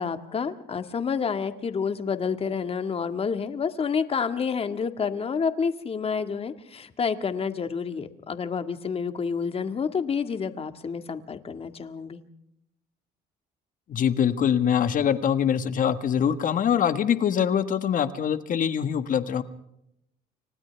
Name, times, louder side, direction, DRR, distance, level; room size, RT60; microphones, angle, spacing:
voice 1, 0.0-12.2, left 6 dB, 35° left, 9 dB, 1.9 m, -29 dB
voice 2, 13.9-19.4, left 8 dB, 50° left, 10 dB, 1.6 m, -24 dB
29.5 x 26.0 x 3.5 m, 0.79 s
cardioid pair, 110°, 17 cm